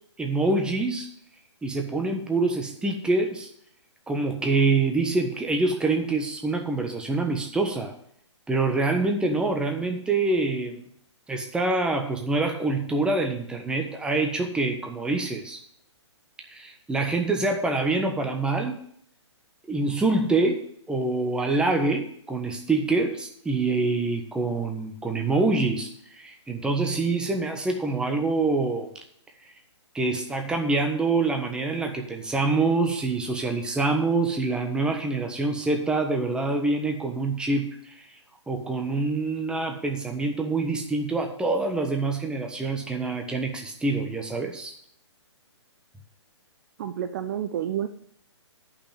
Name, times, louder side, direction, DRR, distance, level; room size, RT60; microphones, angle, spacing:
voice 1, 0.2-1.1 1.6-3.5 4.1-7.9 8.5-10.8 11.3-15.6 16.5-18.8 19.7-25.9 26.1-28.9 29.9-37.9 38.5-44.7, right 3 dB, 5° right, 3 dB, 1.2 m, -25 dB
voice 2, 46.8-47.9, right 10 dB, 40° right, 9 dB, 0.7 m, -29 dB
10.0 x 5.9 x 7.1 m, 0.66 s
figure-of-eight pair, 130°, 15 cm